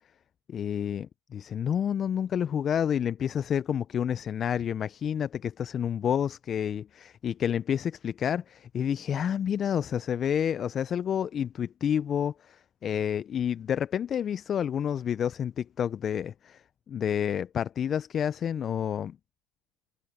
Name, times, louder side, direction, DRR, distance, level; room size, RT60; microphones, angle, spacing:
voice 1, 0.5-16.6 16.9-19.2, left 8 dB, 35° left, 0.6 m, -29 dB
hypercardioid pair, 90°, 0 cm